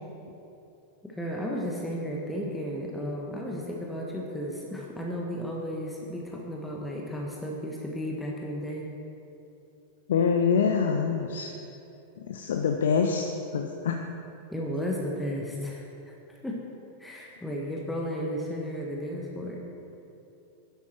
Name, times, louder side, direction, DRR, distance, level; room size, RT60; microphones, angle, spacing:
voice 1, 1.0-8.8 14.5-16.1 16.4-16.6 17.0-19.6, equal, 5° left, -2 dB, 1.3 m, -34 dB
voice 2, 10.1-11.5 12.2-13.2 13.5-14.1, left 6 dB, 60° left, 4 dB, 0.6 m, -25 dB
11.5 x 10.5 x 4.5 m, 2.8 s
figure-of-eight pair, 90°, 0 cm